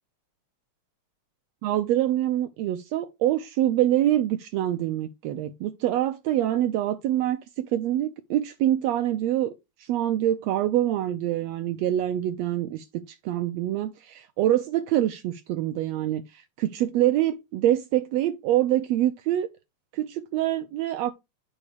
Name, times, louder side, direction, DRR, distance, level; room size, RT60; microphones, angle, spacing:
voice 1, 1.6-9.5 9.8-19.5 19.9-21.1, right 13 dB, 80° right, 1.6 m, -25 dB
9.8 x 4.5 x 3.4 m
omnidirectional pair, 3.4 m